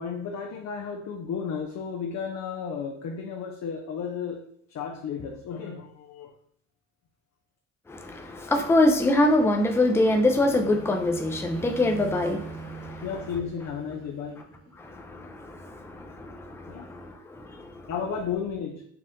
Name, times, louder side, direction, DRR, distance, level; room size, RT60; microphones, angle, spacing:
voice 1, 0.0-4.4 4.7-6.3 13.0-14.5 15.2-15.3 16.7-16.9 17.9-18.9, left 6 dB, 60° left, 2 dB, 0.6 m, -33 dB
voice 2, 7.9-13.1 14.8-17.9, left 1 dB, 10° left, 4 dB, 0.5 m, -25 dB
sound 1, 9.3-15.0, right 4 dB, 50° right, 1.6 m, -43 dB
4.3 x 2.5 x 3.6 m, 0.66 s
cardioid pair, 90°, 30 cm